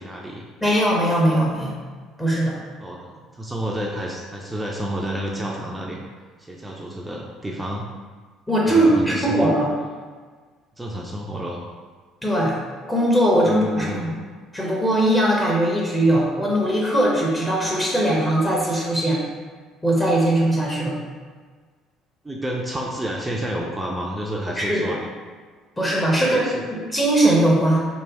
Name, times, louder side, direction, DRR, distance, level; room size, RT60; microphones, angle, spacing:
voice 1, 0.0-0.5 2.8-6.0 6.4-7.9 8.7-9.5 10.8-11.6 13.4-14.2 22.2-25.1 26.2-26.6, right 1 dB, 10° right, -2 dB, 0.4 m, -30 dB
voice 2, 0.6-1.7 2.2-2.6 8.5-9.7 12.2-12.6 12.9-14.1 14.5-19.2 19.8-21.0 24.6-24.9 25.8-27.8, right 1 dB, 15° left, -4 dB, 0.8 m, -20 dB
3.1 x 2.2 x 3.6 m, 1.5 s
figure-of-eight pair, 55°, 0 cm